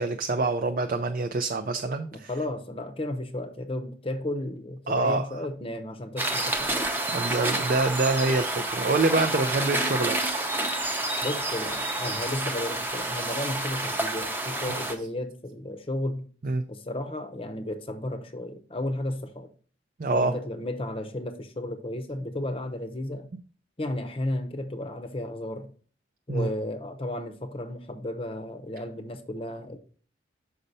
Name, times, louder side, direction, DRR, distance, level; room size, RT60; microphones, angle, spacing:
voice 1, 0.0-2.3 4.9-5.3 7.1-10.4 14.7-14.8 16.4-16.6 20.0-20.4 26.3-26.5, right 3 dB, 45° right, 0.4 m, -26 dB
voice 2, 2.1-6.9 11.2-16.3 16.7-19.5 20.1-23.3 23.8-25.7 26.3-29.8, left 1 dB, 30° left, 0.7 m, -33 dB
sound 1, 6.2-14.9, right 2 dB, 10° right, 0.7 m, -29 dB
6.6 x 5.3 x 4.1 m
head